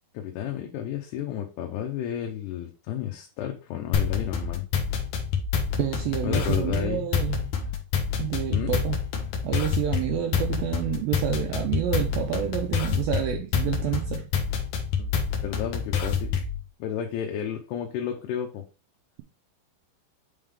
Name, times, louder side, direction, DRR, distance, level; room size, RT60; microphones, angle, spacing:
voice 1, 0.1-4.7 6.2-7.1 8.5-8.8 15.0-15.1 15.4-16.4 16.8-18.6, left 9 dB, 85° left, 3.0 m, -32 dB
sound 1, 3.9-16.6, left 6 dB, 65° left, 2.0 m, -27 dB
voice 2, 5.8-7.5 8.2-9.0 9.4-14.3, right 11 dB, 90° right, 2.1 m, -28 dB
8.9 x 3.7 x 3.5 m
omnidirectional pair, 4.8 m